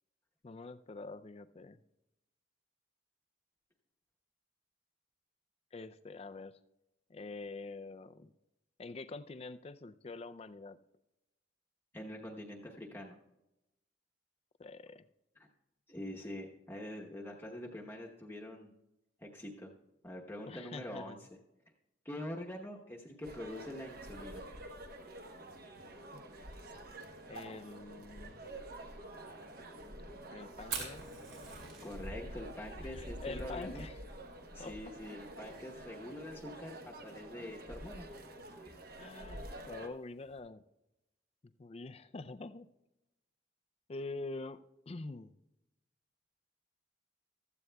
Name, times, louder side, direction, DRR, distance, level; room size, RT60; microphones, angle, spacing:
voice 1, 0.4-1.8 5.7-6.6 7.1-8.3 8.8-10.8 14.6-15.1 20.5-21.2 26.1-26.2 27.3-28.4 30.3-31.0 32.9-34.0 34.6-34.9 38.9-40.6 41.4-42.7 43.9-44.6 44.9-45.3, left 3 dB, 30° left, 12 dB, 0.4 m, -45 dB
voice 2, 11.9-13.2 15.4-15.5 15.9-18.7 19.2-19.7 20.0-21.2 22.0-24.4 31.8-33.8 34.5-38.0, left 1 dB, 10° left, -1 dB, 0.9 m, -45 dB
sound 1, 23.2-39.9, right 1 dB, 45° right, 1.0 m, -48 dB
Fire, 30.7-40.4, right 5 dB, 75° right, 3.4 m, -49 dB
15.0 x 13.5 x 2.3 m, 0.94 s
head